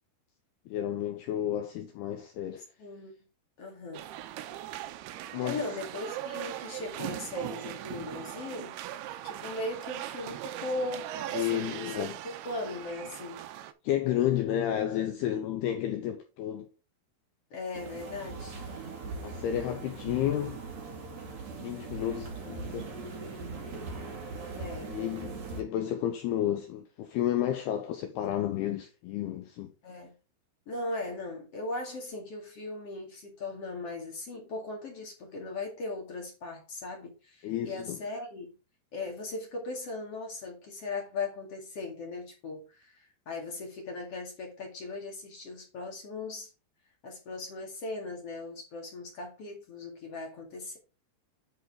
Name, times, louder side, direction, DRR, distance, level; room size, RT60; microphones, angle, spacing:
voice 1, 0.7-2.6 5.3-5.7 11.3-12.1 13.8-16.7 19.2-20.6 21.6-22.9 24.9-29.7 37.4-38.0, left 11 dB, 80° left, 2.4 m, -31 dB
voice 2, 2.8-3.1 3.6-4.1 5.4-8.8 9.2-13.4 17.5-18.6 24.5-24.9 29.8-30.1 30.7-38.6 38.9-46.5 47.0-50.8, left 2 dB, 45° left, 2.2 m, -38 dB
sound 1, 3.9-13.7, right 12 dB, 80° right, 2.4 m, -39 dB
sound 2, 17.7-25.6, right 3 dB, 45° right, 3.0 m, -40 dB
10.5 x 5.2 x 3.7 m
omnidirectional pair, 5.5 m